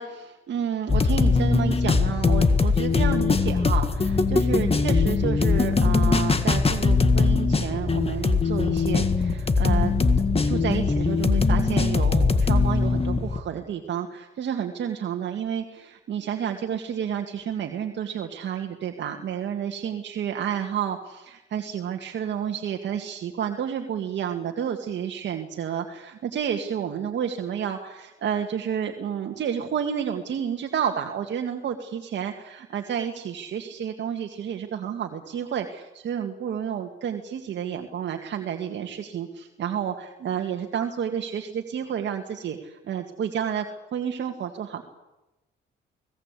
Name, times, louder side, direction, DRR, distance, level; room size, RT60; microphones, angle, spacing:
voice 1, 0.0-10.0 10.4-43.7 43.9-44.8, right 8 dB, 65° right, 3 dB, 2.0 m, -30 dB
sound 1, 0.9-13.4, left 4 dB, 30° left, 1.8 m, -21 dB
25.0 x 18.0 x 8.4 m, 1.0 s
cardioid pair, 90°, 20 cm